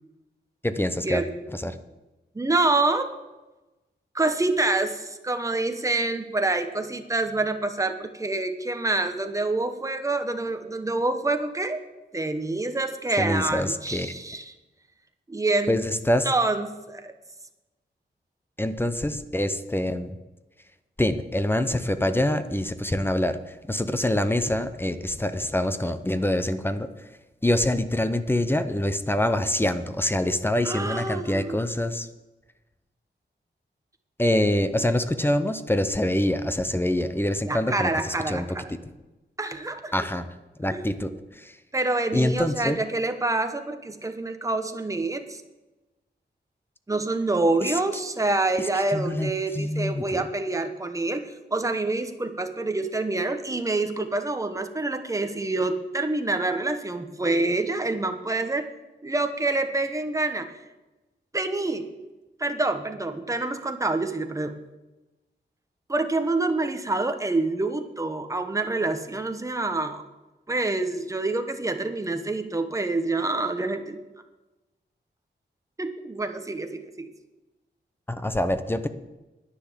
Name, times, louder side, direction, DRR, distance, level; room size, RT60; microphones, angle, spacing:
voice 1, 0.6-1.2 1.5-1.7 13.2-14.1 15.7-16.3 18.6-20.2 21.0-27.1 27.4-32.1 34.2-38.6 39.9-40.3 40.6-41.6 42.1-42.8 47.6-47.7 48.6-50.2 78.1-78.9, left 1 dB, 10° left, 10 dB, 0.6 m, -25 dB
voice 2, 2.3-3.1 4.1-11.8 12.1-14.5 15.3-15.8 16.2-17.1 30.6-31.6 37.5-38.7 39.4-39.9 40.7-40.9 41.7-45.4 46.9-58.7 59.0-60.6 61.3-61.9 62.4-64.5 65.9-70.0 70.5-74.0 75.8-77.1, right 2 dB, 15° right, 7 dB, 1.0 m, -27 dB
10.5 x 10.0 x 7.3 m, 1.1 s
wide cardioid pair, 175°, 19 cm